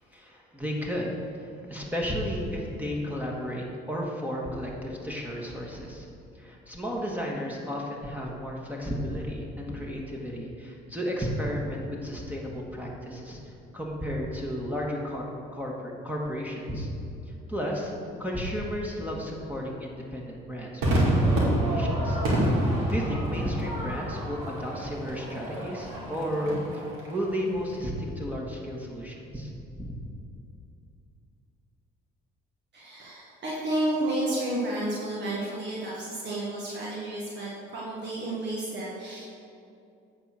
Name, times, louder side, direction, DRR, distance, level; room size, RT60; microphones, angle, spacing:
voice 1, 0.1-6.1 6.3-15.3 15.5-16.9 17.3-17.9 18.2-22.2 22.5-29.9, equal, 10° right, -2 dB, 1.5 m, -33 dB
Crowd / Fireworks, 20.8-27.4, right 1 dB, 80° right, 2.1 m, -27 dB
voice 2, 32.7-39.3, right 1 dB, 60° right, -5 dB, 1.5 m, -31 dB
8.5 x 4.3 x 6.3 m, 2.6 s
supercardioid pair, 75°, 21 cm